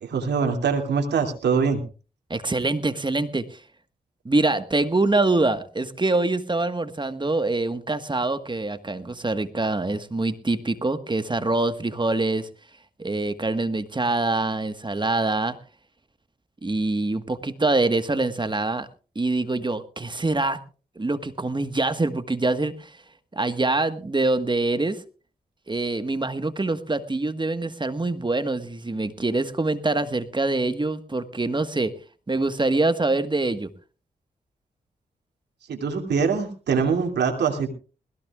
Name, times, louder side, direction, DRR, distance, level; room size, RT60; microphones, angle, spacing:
voice 1, 0.0-1.8 35.7-37.7, right 5 dB, 75° right, 4 dB, 2.7 m, -23 dB
voice 2, 2.3-3.6 4.2-12.5 13.0-15.6 16.6-18.9 19.1-20.6 20.9-23.0 23.3-25.0 25.7-31.9 32.3-33.7, right 2 dB, 25° right, 11 dB, 1.5 m, -25 dB
20.5 x 15.5 x 2.4 m, 0.35 s
supercardioid pair, 40°, 18 cm